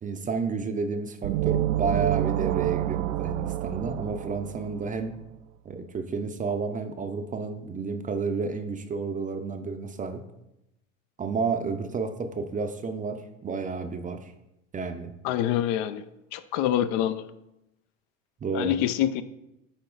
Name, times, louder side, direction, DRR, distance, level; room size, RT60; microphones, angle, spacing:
voice 1, 0.0-5.2 5.6-10.2 11.2-14.3 14.7-15.1 18.4-18.7, right 4 dB, 20° right, 8 dB, 0.6 m, -31 dB
sound 1, 1.2-5.0, right 14 dB, 65° right, 0.5 m, -28 dB
voice 2, 15.2-16.0 16.3-17.3 18.5-19.2, left 11 dB, 55° left, 12 dB, 0.6 m, -26 dB
8.8 x 4.0 x 3.8 m, 0.87 s
hypercardioid pair, 90°, 39 cm